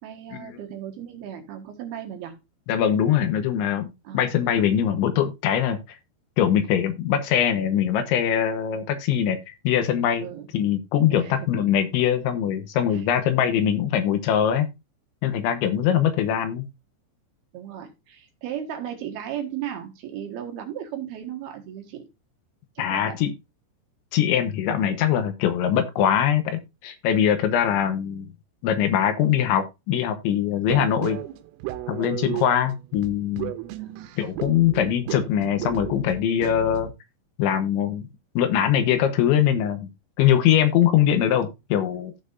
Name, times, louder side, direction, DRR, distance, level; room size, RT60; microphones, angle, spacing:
voice 1, 0.0-2.4 4.0-4.3 10.2-10.5 11.1-11.5 12.9-13.0 15.6-15.8 17.5-22.1 22.8-23.2 30.6-30.9 33.8-34.1, right 10 dB, 65° right, 2.9 m, -36 dB
voice 2, 2.7-6.0 6.4-10.3 10.5-14.7 15.2-16.7 22.8-23.3 24.1-28.3 28.6-31.2 31.9-33.5 34.2-36.9 37.4-38.1 38.4-39.9 40.2-42.1, left 9 dB, 75° left, 3.3 m, -22 dB
sound 1, 30.7-36.9, right 15 dB, 90° right, 3.3 m, -34 dB
15.0 x 5.9 x 2.6 m
omnidirectional pair, 5.7 m